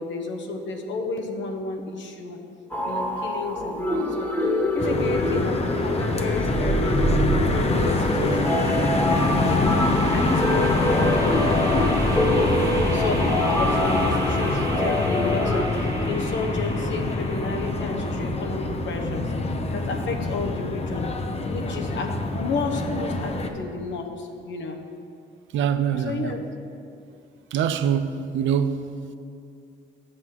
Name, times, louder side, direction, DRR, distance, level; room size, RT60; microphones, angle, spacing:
voice 1, 0.0-2.4 2.8-7.0 7.5-9.6 10.1-12.0 12.9-21.1 21.5-24.8 25.9-26.4, left 3 dB, 70° left, 1.2 m, -32 dB
sound 1, 2.7-15.6, left 1 dB, 10° left, 1.5 m, -26 dB
sound 2, 4.8-23.5, left 2 dB, 30° left, 0.8 m, -25 dB
sound 3, 6.2-18.1, right 3 dB, 20° right, 1.2 m, -31 dB
voice 2, 25.5-26.4 27.5-29.2, right 8 dB, 75° right, 0.6 m, -24 dB
7.4 x 6.3 x 7.7 m
cardioid pair, 90°, 20 cm